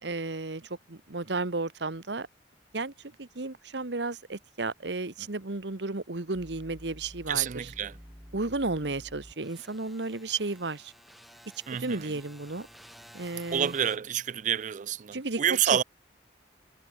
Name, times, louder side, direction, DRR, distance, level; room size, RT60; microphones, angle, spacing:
voice 1, 0.0-2.3 2.7-2.9 3.2-7.7 8.3-10.9 11.8-12.7 13.1-13.7 15.1-15.8, right 3 dB, 70° right, 1.4 m, -33 dB
sound 1, 6.3-14.0, equal, ahead, 1.6 m, -51 dB
voice 2, 7.3-8.0 11.7-12.1 13.5-15.8, right 9 dB, 45° right, 0.4 m, -28 dB
head